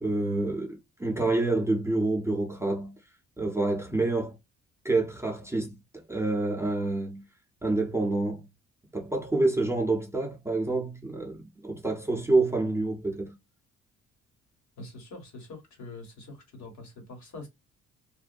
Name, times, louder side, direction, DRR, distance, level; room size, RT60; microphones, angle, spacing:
voice 1, 0.0-3.0 3.4-4.3 4.8-7.2 7.6-8.5 8.9-13.4, right 2 dB, 10° right, 0.6 m, -28 dB
voice 2, 14.8-17.5, left 2 dB, 65° left, 1.4 m, -44 dB
2.6 x 2.1 x 2.4 m
cardioid pair, 90°, 30 cm